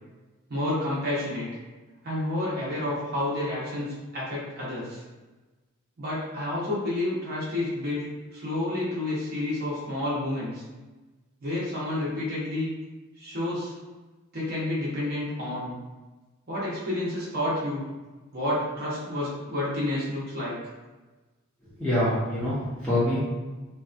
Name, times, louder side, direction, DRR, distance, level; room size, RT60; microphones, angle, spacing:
voice 1, 0.5-1.5 2.0-5.0 6.0-8.1 8.3-10.6 11.4-12.7 13.2-13.7 14.3-15.7 16.5-17.8 18.3-20.5, left 1 dB, 45° right, -8 dB, 0.8 m, -29 dB
voice 2, 21.8-23.2, left 1 dB, 5° left, -12 dB, 0.6 m, -25 dB
2.7 x 2.4 x 2.4 m, 1.2 s
head